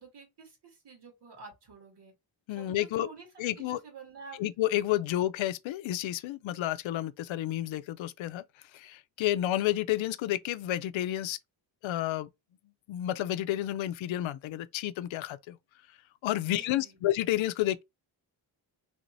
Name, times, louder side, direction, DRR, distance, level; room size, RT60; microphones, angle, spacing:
voice 1, 0.0-2.1 2.5-3.3 3.6-4.4 16.4-17.0, right 4 dB, 60° right, 2.0 m, -49 dB
voice 2, 2.5-3.1 3.4-3.8 4.4-8.4 8.7-11.4 11.8-12.3 12.9-15.6 16.2-17.8, left 14 dB, 80° left, 0.5 m, -30 dB
3.5 x 3.1 x 2.6 m
cardioid pair, 95°, 46 cm